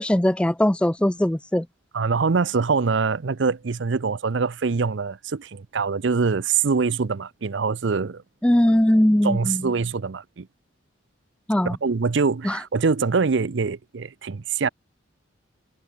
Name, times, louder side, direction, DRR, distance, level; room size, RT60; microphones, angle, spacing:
voice 1, 0.0-1.7 8.4-9.7 11.5-11.8 12.4-12.6, left 1 dB, 5° left, 0.3 m, -20 dB
voice 2, 1.9-8.2 9.2-10.5 11.6-14.7, right 5 dB, 65° right, 0.6 m, -24 dB
head